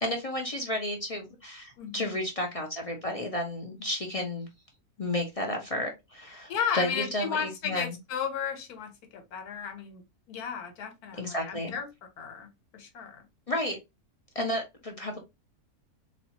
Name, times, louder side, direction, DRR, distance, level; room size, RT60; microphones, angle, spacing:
voice 1, 0.0-4.5 5.0-8.0 11.2-11.7 13.5-13.8 14.3-15.2, left 1 dB, 45° left, 0.4 m, -32 dB
voice 2, 1.8-2.2 6.5-11.9 12.2-13.2, left 7 dB, 80° left, 1.5 m, -34 dB
4.1 x 2.4 x 2.8 m
omnidirectional pair, 1.6 m